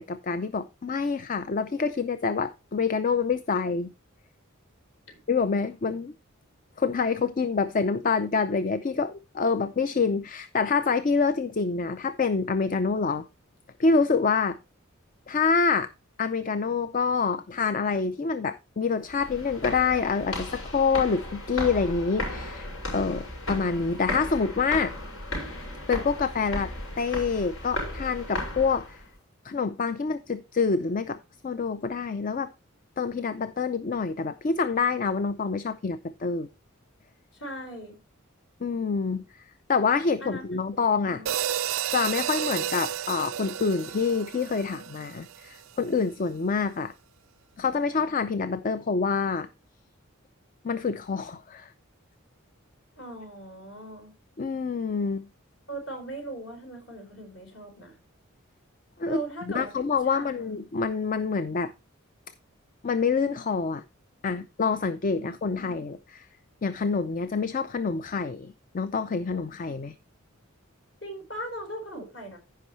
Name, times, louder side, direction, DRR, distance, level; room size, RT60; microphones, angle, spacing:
voice 1, 0.0-3.9 5.3-6.1 6.8-13.3 13.8-14.6 15.3-15.9 16.2-24.9 25.9-29.0 29.4-31.2 31.4-32.5 33.0-36.5 38.6-39.4 39.7-41.2 41.9-46.9 47.6-49.5 50.6-51.7 54.4-55.3 59.0-59.2 59.5-61.7 62.8-63.8 64.2-66.3 66.6-69.9, left 5 dB, 40° left, 0.5 m, -27 dB
sound 1, 19.1-29.1, left 1 dB, 85° left, 5.8 m, -35 dB
voice 2, 37.3-38.0 40.2-40.6 41.0-41.3 53.0-54.1 55.7-58.0 59.0-59.7 60.0-60.6 65.1-65.8 71.0-72.4, right 2 dB, 60° left, 4.7 m, -39 dB
sound 2, 41.3-45.6, right 10 dB, 80° right, 0.4 m, -32 dB
15.0 x 5.5 x 3.1 m
head